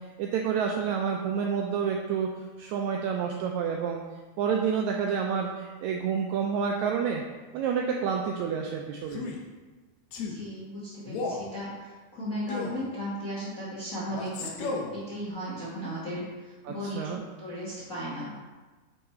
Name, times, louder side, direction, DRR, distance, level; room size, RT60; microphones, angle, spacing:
voice 1, 0.2-2.3 2.6-4.0 4.4-7.2 7.5-9.3 16.6-17.2, right 7 dB, 85° right, 2 dB, 1.6 m, -29 dB
Male speech man speaking, 9.1-9.4 10.1-10.4 11.1-11.5 12.5-12.8 14.1-14.9, left 4 dB, 70° left, 1.9 m, -34 dB
voice 2, 10.2-18.3, equal, 50° left, -8 dB, 1.0 m, -36 dB
7.9 x 3.8 x 4.3 m, 1.3 s
omnidirectional pair, 3.7 m